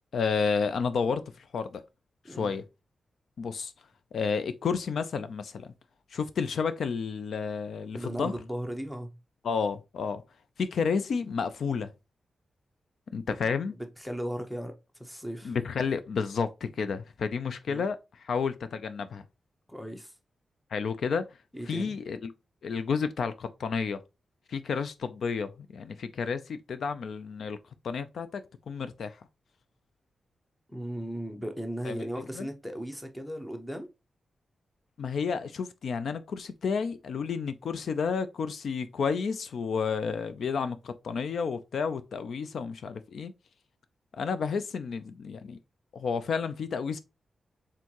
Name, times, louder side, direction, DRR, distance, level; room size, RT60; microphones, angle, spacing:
voice 1, 0.1-1.8 2.3-2.6 3.4-3.7 4.1-5.7 6.1-8.3 9.4-10.2 10.6-11.9 13.1-13.7 15.4-19.2 20.7-21.2 21.7-22.2 22.6-24.0 24.5-27.6 27.8-29.2 31.8-32.0 32.3-32.5 35.0-43.3 44.1-45.6 45.9-47.0, left 5 dB, 70° left, 0.4 m, -31 dB
voice 2, 2.2-2.6 7.9-9.2 13.7-15.6 17.7-17.8 19.7-20.1 21.5-22.0 30.7-33.9, equal, 5° left, 0.8 m, -37 dB
4.4 x 3.6 x 2.9 m
wide cardioid pair, 160°, 0 cm